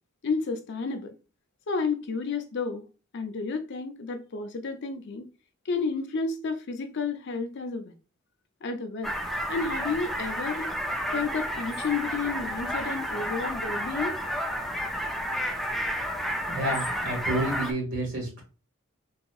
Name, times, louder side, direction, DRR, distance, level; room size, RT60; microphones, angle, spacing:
voice 1, 0.2-1.1 1.7-2.9 3.1-5.2 5.7-7.9 8.6-9.1 9.5-10.7 11.1-14.2, left 4 dB, 55° left, 0.5 m, -31 dB
sound 1, 9.0-17.7, equal, ahead, 0.4 m, -31 dB
voice 2, 16.5-18.4, right 1 dB, 60° right, 1.6 m, -30 dB
4.0 x 2.6 x 2.3 m
head